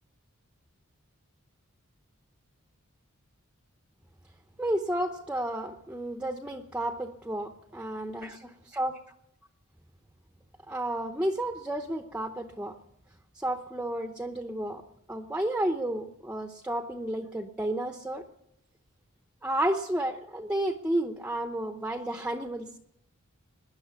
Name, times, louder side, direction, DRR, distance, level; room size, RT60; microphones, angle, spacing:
voice 1, 4.6-9.0 10.7-12.8 13.4-14.8 15.1-18.3 19.4-22.8, right 1 dB, 5° right, 6 dB, 0.8 m, -32 dB
19.0 x 10.5 x 7.0 m, 0.82 s
head